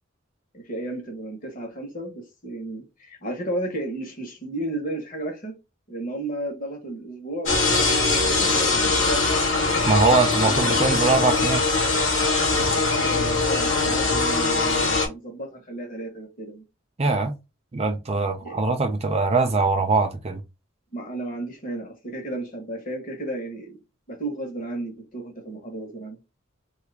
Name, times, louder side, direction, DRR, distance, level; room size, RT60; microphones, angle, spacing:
voice 1, 0.5-5.6 5.9-8.9 10.4-10.9 13.0-16.6 18.4-18.6 20.9-23.8 24.1-26.2, right 1 dB, 40° left, 1.0 m, -33 dB
sound 1, 7.5-15.1, left 3 dB, 65° left, 1.2 m, -21 dB
voice 2, 9.9-11.6 17.0-17.3 17.7-20.4, right 3 dB, 30° right, 0.4 m, -22 dB
2.8 x 2.4 x 3.2 m
head